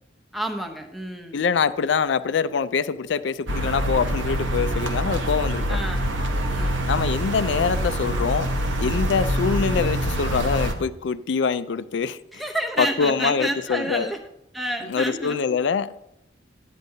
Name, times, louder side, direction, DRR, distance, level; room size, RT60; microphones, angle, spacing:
voice 1, 0.3-1.4 5.7-6.1 6.4-6.9 12.3-14.2 14.5-15.6, right 1 dB, ahead, 0.7 m, -29 dB
voice 2, 1.3-5.8 6.9-8.5 8.8-12.2 12.8-14.1 14.9-16.0, left 5 dB, 70° left, 0.4 m, -24 dB
sound 1, 3.5-10.7, equal, 80° right, 1.0 m, -25 dB
10.5 x 9.0 x 2.8 m
head